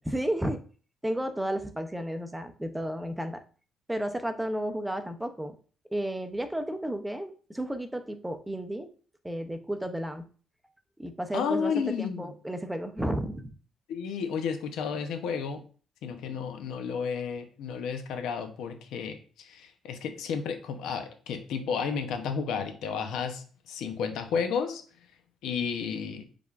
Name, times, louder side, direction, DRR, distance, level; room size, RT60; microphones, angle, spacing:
voice 1, 0.0-0.6 1.0-3.4 3.9-5.5 5.9-8.9 9.2-10.3 11.0-11.7 12.0-13.5, right 1 dB, 10° right, 7 dB, 0.5 m, -32 dB
voice 2, 11.3-12.3 13.9-15.6 16.0-24.8 25.4-26.2, left 6 dB, 85° left, 6 dB, 0.7 m, -32 dB
5.0 x 3.5 x 2.4 m, 0.40 s
cardioid pair, 90°, 0 cm